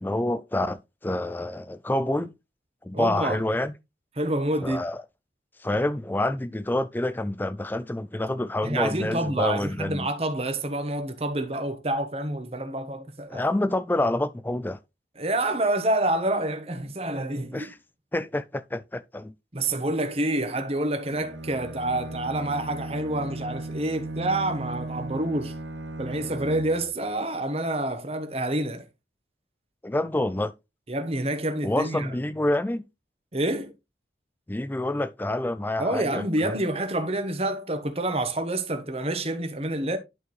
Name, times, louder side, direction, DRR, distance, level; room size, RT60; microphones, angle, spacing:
voice 1, 0.0-2.3 2.8-3.7 4.6-5.0 5.6-10.1 13.3-14.8 17.5-17.7 18.1-19.3 29.8-30.5 31.6-32.8 34.5-36.2, left 1 dB, 10° left, 0.3 m, -27 dB
voice 2, 2.9-3.4 4.2-4.8 8.6-13.4 15.2-17.7 19.5-25.5 26.0-28.9 30.9-32.1 33.3-33.7 35.8-40.0, right 1 dB, 35° right, 1.1 m, -28 dB
Bowed string instrument, 21.0-27.0, right 2 dB, 85° right, 0.8 m, -36 dB
11.0 x 4.5 x 3.2 m
head